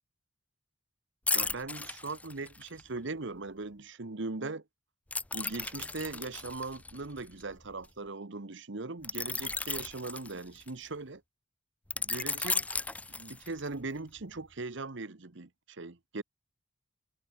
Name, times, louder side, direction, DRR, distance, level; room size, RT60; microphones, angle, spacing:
sound 1, 1.3-2.8 5.1-7.9 9.0-10.9 11.9-13.7 14.2-14.4, left 3 dB, 5° left, 0.4 m, -35 dB
voice 1, 1.3-4.6 5.3-11.2 12.0-12.7 13.2-16.2, right 3 dB, 65° right, 1.2 m, -40 dB
head